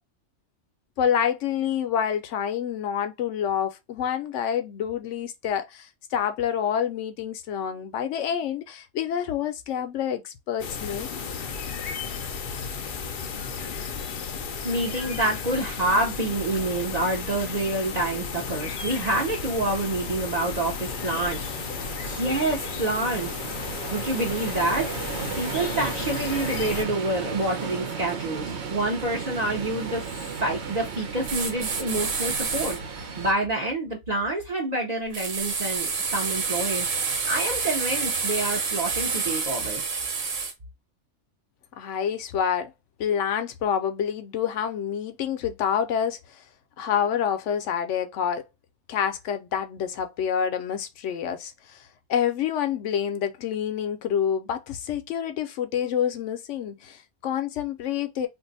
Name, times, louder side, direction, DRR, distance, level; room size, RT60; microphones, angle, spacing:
voice 1, 1.0-11.1 41.8-42.7 43.0-46.4 46.8-48.4 48.9-51.8 52.1-58.3, left 8 dB, 80° left, 0.9 m, -27 dB
sound 1, 10.6-26.8, left 6 dB, 55° left, 0.6 m, -34 dB
voice 2, 14.6-21.8 22.0-23.4 23.9-24.9 25.4-36.9 37.3-39.8, right 2 dB, 40° right, 0.8 m, -27 dB
sound 2, 16.3-33.3, right 5 dB, 70° right, 1.0 m, -36 dB
sound 3, 31.3-32.8 35.1-40.5, right 5 dB, 90° right, 1.2 m, -28 dB
2.6 x 2.5 x 3.9 m
omnidirectional pair, 1.2 m